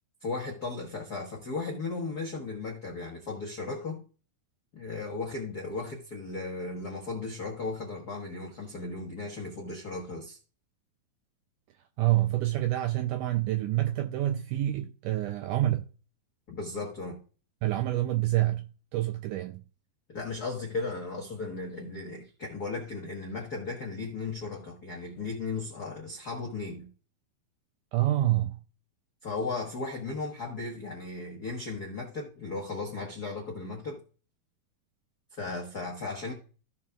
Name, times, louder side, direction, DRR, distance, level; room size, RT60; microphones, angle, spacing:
voice 1, 0.2-4.0 4.7-10.4 16.5-17.2 20.1-26.9 29.2-34.0 35.3-36.3, left 3 dB, 75° left, 0.8 m, -36 dB
voice 2, 12.0-15.8 17.6-19.6 27.9-28.6, right 14 dB, 80° right, 1.8 m, -27 dB
15.0 x 5.5 x 2.4 m
omnidirectional pair, 4.2 m